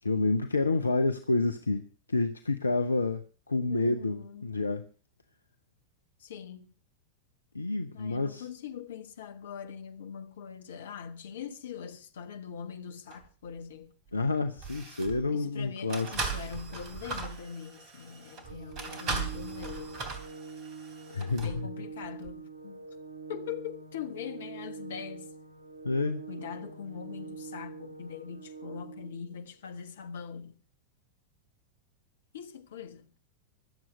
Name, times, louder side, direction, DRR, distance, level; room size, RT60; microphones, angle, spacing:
voice 1, 0.0-4.9 7.5-8.5 14.1-16.1 21.1-21.7 25.8-26.2, left 3 dB, 80° left, 0.7 m, -29 dB
voice 2, 3.7-4.6 6.2-6.7 7.9-13.9 15.3-20.1 21.4-22.9 23.3-25.3 26.3-30.6 32.3-33.2, left 7 dB, 60° left, 1.4 m, -42 dB
sound 1, 13.1-13.3 14.1-14.2 14.6-15.3 15.9-21.6 22.2-22.3, right 4 dB, 35° right, 2.9 m, -38 dB
Organ, 18.4-29.4, right 4 dB, 75° right, 3.0 m, -45 dB
23.0 x 7.7 x 5.3 m
figure-of-eight pair, 90°, 0 cm